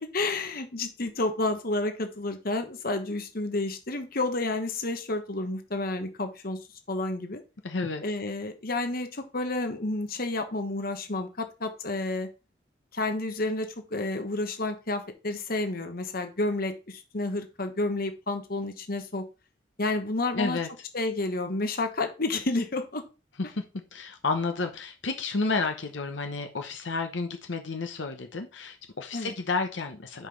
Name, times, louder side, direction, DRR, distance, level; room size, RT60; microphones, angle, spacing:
voice 1, 0.0-6.6 6.9-7.4 8.0-12.3 12.9-19.2 19.8-20.6 20.9-23.0 29.1-29.3, left 2 dB, 50° left, 1.2 m, -30 dB
voice 2, 7.6-8.0 20.3-20.7 23.4-23.6 23.9-30.3, left 3 dB, 80° left, 0.9 m, -31 dB
5.8 x 5.2 x 5.8 m
head